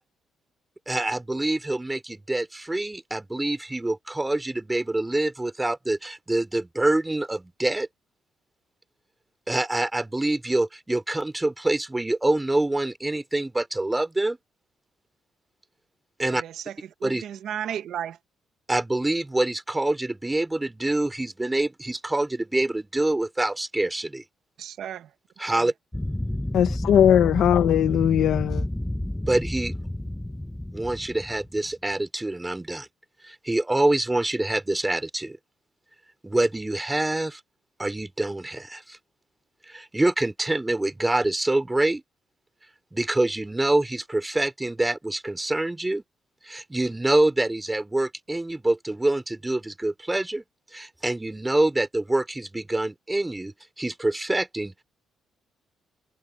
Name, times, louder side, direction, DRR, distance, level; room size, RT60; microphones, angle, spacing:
voice 1, 0.9-7.9 9.5-14.4 16.2-16.4 17.0-17.2 18.7-24.2 25.4-25.7 29.3-29.7 30.7-32.9 33.2-35.4 36.2-37.4 37.8-39.0 39.7-42.0 42.9-46.0 46.4-50.4 50.7-54.8, right 2 dB, 15° right, 4.9 m, -26 dB
voice 2, 16.3-16.7 17.0-18.2 24.6-25.1 25.6-25.7, right 10 dB, 70° right, 1.7 m, -34 dB
sound 1, 25.9-31.7, left 1 dB, 5° left, 1.2 m, -30 dB
voice 3, 26.5-28.7, left 10 dB, 75° left, 1.3 m, -19 dB
cardioid pair, 90°, 0 cm